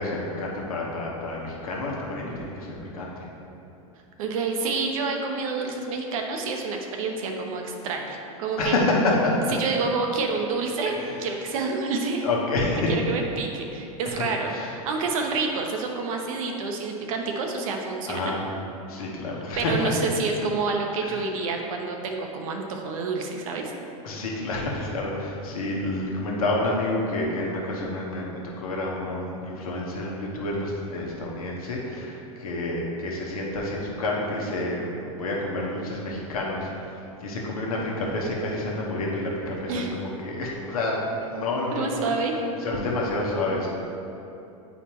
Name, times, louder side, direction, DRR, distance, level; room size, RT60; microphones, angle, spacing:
voice 1, 0.0-3.3 8.6-9.5 10.8-11.2 12.2-13.1 14.5-14.7 18.1-18.5 18.9-19.9 21.0-21.2 24.0-42.0 42.6-43.7, left 2 dB, 85° left, -3 dB, 1.2 m, -28 dB
voice 2, 4.2-8.8 9.6-12.3 12.9-18.3 19.6-23.7 39.7-39.9 41.7-42.4, right 4 dB, 70° right, 2 dB, 0.9 m, -28 dB
8.8 x 4.2 x 3.0 m, 2.8 s
hypercardioid pair, 105°, 18 cm